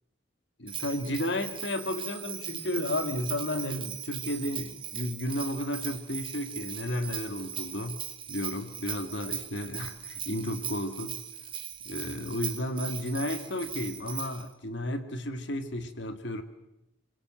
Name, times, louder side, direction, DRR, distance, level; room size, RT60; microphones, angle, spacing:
voice 1, 0.6-11.2 11.8-16.4, left 1 dB, 60° left, 9 dB, 2.1 m, -33 dB
Bell, 0.7-14.5, right 9 dB, 25° right, 2.2 m, -39 dB
26.5 x 23.0 x 7.8 m, 0.85 s
head